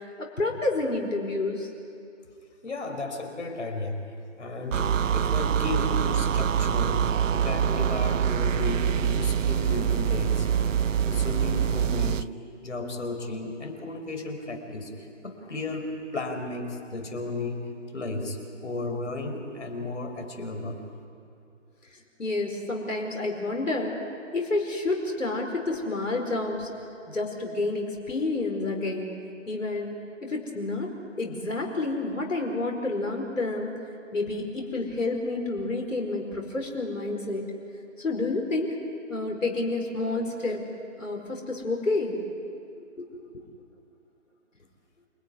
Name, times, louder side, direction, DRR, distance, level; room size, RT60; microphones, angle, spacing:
voice 1, 0.2-1.7 22.2-24.0 24.3-26.7 27.1-29.1 29.5-30.9 31.2-33.7 34.1-37.5 38.0-38.8 39.1-40.6 41.0-42.2 43.0-43.1 43.3-43.4, left 2 dB, 85° left, 2 dB, 4.8 m, -29 dB
voice 2, 2.6-4.0 4.4-7.1 7.3-10.5 11.1-12.3 12.6-15.9 16.1-17.6 17.9-18.4 18.6-20.8, left 2 dB, 65° left, 5 dB, 5.2 m, -33 dB
sound 1, 4.7-12.3, right 8 dB, 80° right, 0.6 m, -25 dB
29.0 x 18.5 x 9.8 m, 2.5 s
figure-of-eight pair, 160°, 38 cm